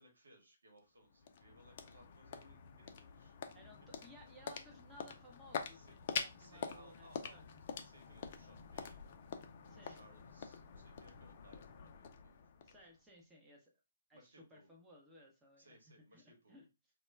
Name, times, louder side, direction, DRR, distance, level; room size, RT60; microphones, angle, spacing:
voice 1, 0.0-3.3 3.9-4.0 5.7-5.9 6.4-9.2 9.6-12.8 14.1-14.7 15.6-16.6, right 1 dB, 80° right, 2 dB, 1.1 m, -65 dB
sound 1, 0.8-13.2, left 6 dB, 45° left, 0.4 m, -47 dB
voice 2, 3.5-7.4 9.7-10.0 12.6-13.7 14.1-15.8 16.1-16.7, equal, 10° right, -2 dB, 0.7 m, -60 dB
2.2 x 2.1 x 3.3 m, 0.28 s
figure-of-eight pair, 135°, 0 cm